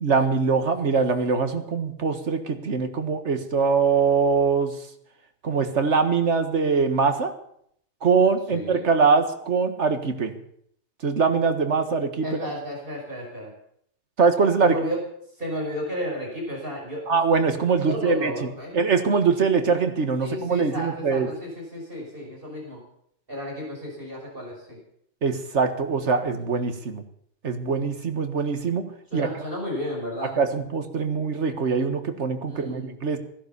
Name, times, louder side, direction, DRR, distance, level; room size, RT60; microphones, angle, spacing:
voice 1, 0.0-4.7 5.4-7.3 8.0-10.3 11.0-12.4 14.2-14.7 17.1-18.3 18.7-21.3 25.2-27.0 27.4-28.9 29.1-29.3 30.4-33.2, right 5 dB, 85° right, 8 dB, 1.9 m, -22 dB
voice 2, 8.5-8.8 12.2-13.5 14.6-15.1 15.4-17.1 17.8-18.8 20.2-22.8 23.3-24.8 29.1-30.4 32.5-32.9, equal, 50° right, -1 dB, 5.9 m, -33 dB
16.5 x 11.0 x 7.0 m, 0.69 s
omnidirectional pair, 1.2 m